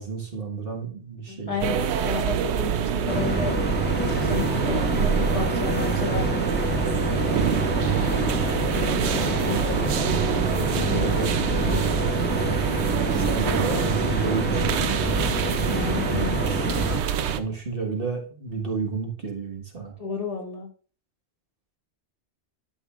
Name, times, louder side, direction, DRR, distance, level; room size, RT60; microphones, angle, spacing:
voice 1, 0.0-1.8 7.2-8.1 10.6-12.0 13.1-15.0 17.4-19.9, right 4 dB, 55° right, 1 dB, 1.7 m, -31 dB
voice 2, 1.3-3.6 4.0-6.6 8.7-10.2 10.7-11.2 11.6-12.3 15.7-16.4 20.0-20.7, left 4 dB, 35° left, 1 dB, 1.4 m, -33 dB
sound 1, 1.6-17.4, right 8 dB, 80° right, 0.9 m, -26 dB
sound 2, 3.1-17.0, equal, 10° left, 0.7 m, -28 dB
11.5 x 5.4 x 2.4 m, 0.41 s
omnidirectional pair, 1.1 m